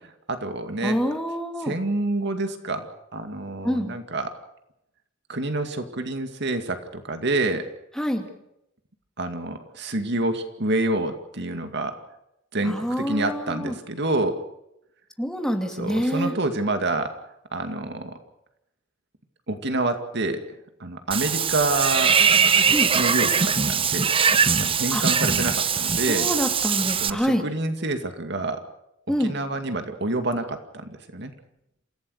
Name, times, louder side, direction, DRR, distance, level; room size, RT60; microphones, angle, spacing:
voice 1, 0.3-1.0 1.6-4.4 5.3-7.6 9.2-12.0 12.5-14.4 15.8-17.1 17.5-18.2 19.5-20.4 20.8-22.2 22.9-24.1 24.6-26.3 27.0-28.6 29.2-31.3, right 2 dB, 60° right, 7 dB, 2.3 m, -27 dB
voice 2, 0.8-1.8 3.6-4.0 8.0-8.3 12.7-13.7 15.2-16.3 22.7-22.9 24.9-25.0 26.1-27.4 29.1-29.4, equal, 5° left, 4 dB, 2.6 m, -26 dB
Water / Bathtub (filling or washing), 21.1-27.1, right 6 dB, 30° right, 0.8 m, -21 dB
27.5 x 16.5 x 6.6 m, 0.81 s
head